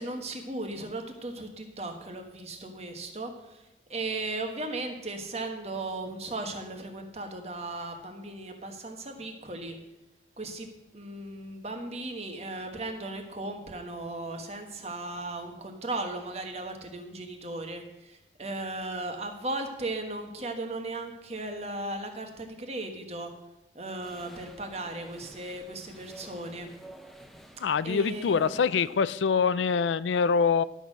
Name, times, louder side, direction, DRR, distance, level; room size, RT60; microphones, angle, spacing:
voice 1, 0.0-3.6 3.9-9.7 10.4-23.3 23.7-26.7 27.8-28.4, right 2 dB, 35° right, 4 dB, 1.4 m, -36 dB
sound 1, 24.0-29.0, right 1 dB, ahead, 0.7 m, -51 dB
voice 2, 27.6-30.6, left 6 dB, 90° left, 17 dB, 0.4 m, -25 dB
12.0 x 6.5 x 6.4 m, 0.94 s
head